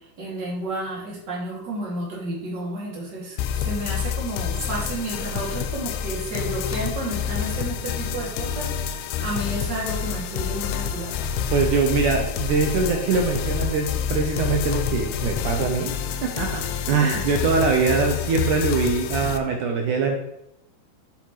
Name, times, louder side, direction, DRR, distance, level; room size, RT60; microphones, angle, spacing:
voice 1, 0.2-11.2, right 1 dB, 35° right, -4 dB, 2.4 m, -31 dB
sound 1, 3.4-19.4, left 8 dB, 85° left, 2.5 m, -28 dB
voice 2, 11.5-16.0 16.2-20.2, right 4 dB, 75° right, 2 dB, 1.9 m, -23 dB
7.1 x 7.1 x 3.1 m, 0.81 s
omnidirectional pair, 4.5 m